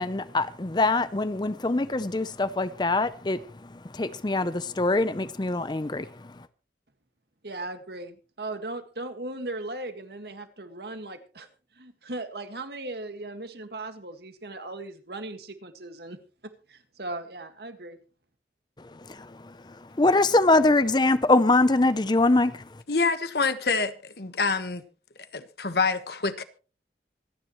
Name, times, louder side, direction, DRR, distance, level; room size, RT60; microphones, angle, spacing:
voice 1, 0.0-6.5 18.8-22.8, left 2 dB, 25° left, 0.6 m, -24 dB
voice 2, 7.4-11.5 11.8-16.2 16.4-18.0, right 2 dB, 65° right, 1.8 m, -38 dB
voice 3, 22.9-24.8 25.3-26.4, left 4 dB, 65° left, 1.3 m, -26 dB
26.0 x 10.0 x 3.1 m
head